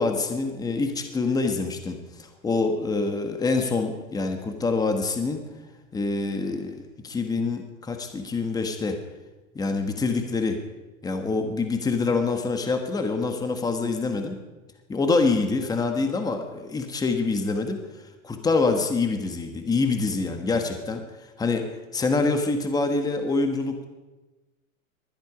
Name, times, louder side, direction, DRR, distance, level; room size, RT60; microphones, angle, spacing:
voice 1, 0.0-5.4 5.9-9.0 9.5-10.6 11.0-14.4 14.9-17.8 18.2-21.0 21.4-21.7 21.9-23.9, left 3 dB, 10° left, 5 dB, 1.4 m, -25 dB
20.5 x 12.0 x 5.0 m, 1.1 s
supercardioid pair, 150°, 42 cm